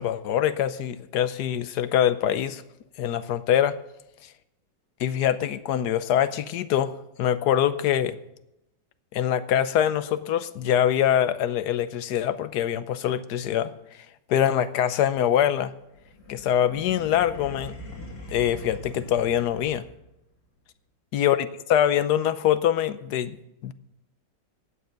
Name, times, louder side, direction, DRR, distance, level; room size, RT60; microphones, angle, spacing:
voice 1, 0.0-2.6 3.0-3.8 4.2-4.3 5.0-6.9 7.2-8.2 9.1-13.7 14.3-15.7 16.3-17.7 18.3-19.8 21.1-23.4 23.6-23.7, left 10 dB, 70° left, 13 dB, 1.2 m, -24 dB
sound 1, 15.9-20.2, equal, 55° left, 3.3 m, -42 dB
15.5 x 9.6 x 5.2 m, 0.85 s
omnidirectional pair, 1.9 m